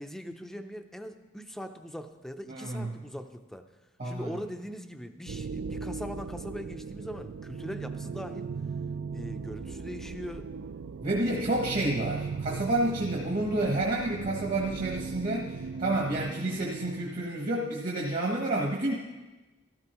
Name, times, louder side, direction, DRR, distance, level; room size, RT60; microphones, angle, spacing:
voice 1, 0.0-3.7 4.0-8.5 9.1-10.5 11.2-11.7, equal, ahead, 7 dB, 0.5 m, -41 dB
voice 2, 2.5-2.9 4.0-4.4 11.0-18.9, right 2 dB, 45° right, -2 dB, 1.1 m, -29 dB
sound 1, 5.3-17.2, right 5 dB, 65° right, 0.3 m, -38 dB
13.5 x 13.0 x 3.0 m, 1.2 s
head